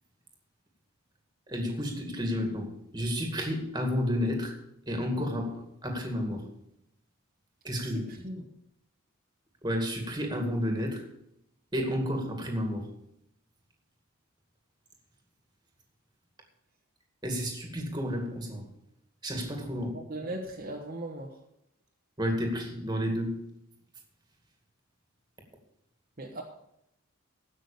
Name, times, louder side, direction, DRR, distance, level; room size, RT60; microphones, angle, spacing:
voice 1, 1.5-4.6 4.9-6.5 7.6-8.1 9.6-11.1 11.7-12.9 17.2-18.7 19.2-20.0 22.2-23.4, equal, 20° right, 3 dB, 2.3 m, -31 dB
voice 2, 19.9-21.3 26.2-26.4, right 1 dB, 40° right, 0 dB, 1.3 m, -38 dB
16.0 x 6.3 x 6.8 m, 0.76 s
head